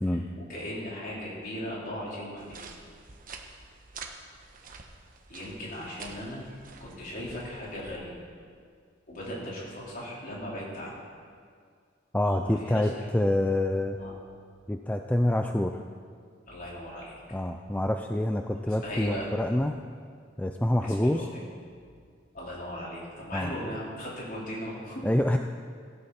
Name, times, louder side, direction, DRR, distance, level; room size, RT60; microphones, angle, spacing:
voice 1, 0.1-2.6 5.3-6.4 6.8-8.1 9.1-10.9 12.3-13.1 14.0-14.1 16.5-17.2 18.7-19.3 20.8-21.4 22.3-25.0, equal, 45° left, -6 dB, 4.4 m, -38 dB
sound 1, 2.4-8.0, right 4 dB, 45° right, 1.2 m, -47 dB
voice 2, 12.1-14.0 14.7-15.8 17.3-19.7 20.4-21.2 23.3-23.5 25.0-25.4, left 1 dB, 5° left, 5 dB, 0.4 m, -26 dB
16.5 x 14.5 x 4.3 m, 2.1 s
head